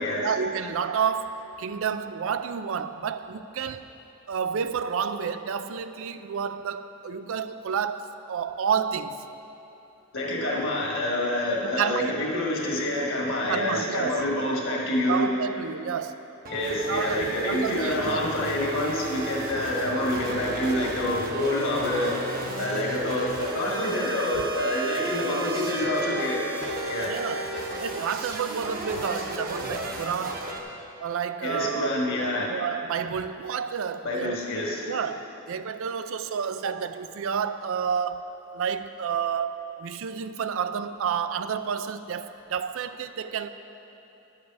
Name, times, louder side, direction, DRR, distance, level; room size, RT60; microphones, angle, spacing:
voice 1, 0.2-3.8 4.3-9.2 10.4-10.6 11.6-12.2 13.5-14.2 15.1-16.2 16.9-18.3 27.0-27.5 27.8-30.5 31.0-32.1 32.5-34.4 34.9-38.2 38.5-43.5, right 7 dB, 70° right, 0.4 m, -30 dB
voice 2, 10.1-15.2 16.5-22.2 22.6-26.4 26.9-27.1 31.4-32.5 34.0-34.9, left 1 dB, 65° left, 1.7 m, -27 dB
sound 1, 16.4-30.6, right 2 dB, 45° right, 1.0 m, -33 dB
10.5 x 7.4 x 4.8 m
head